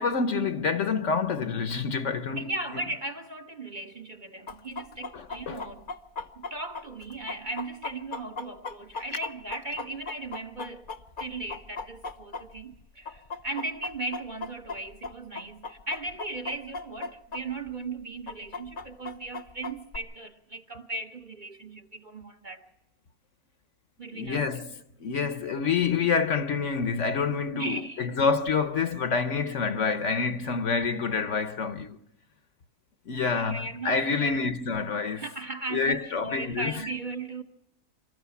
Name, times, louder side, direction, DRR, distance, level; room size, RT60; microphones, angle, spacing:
voice 1, 0.0-2.5 5.1-5.6 24.1-32.0 33.1-35.2 35.7-36.7, left 5 dB, 55° left, 1.1 m, -27 dB
voice 2, 2.3-5.9 6.3-10.9 11.2-22.7 24.0-24.6 27.5-28.2 33.3-34.5 35.1-37.4, right 2 dB, 35° right, 1.1 m, -37 dB
Chicken rooster, 4.5-12.8 13.1-17.4 17.7-17.8 18.3-20.0, left 4 dB, 40° left, 0.9 m, -37 dB
26.5 x 13.5 x 7.2 m
omnidirectional pair, 1.6 m